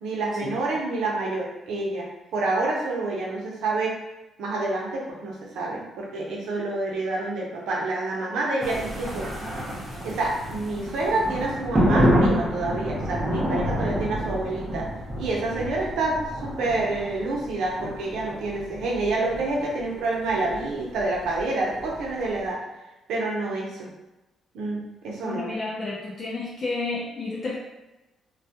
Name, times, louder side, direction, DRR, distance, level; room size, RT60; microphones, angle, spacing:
voice 1, 0.0-4.0 4.4-9.3 9.7-14.9 15.2-22.6 23.1-23.9 24.5-25.5, right 2 dB, 85° right, -3 dB, 0.6 m, -28 dB
sound 1, 8.6-22.4, equal, 20° right, 0.7 m, -28 dB
voice 2, 25.2-27.6, left 3 dB, 40° left, -5 dB, 0.4 m, -31 dB
2.2 x 2.1 x 2.8 m, 1.0 s
cardioid pair, 90°, 0 cm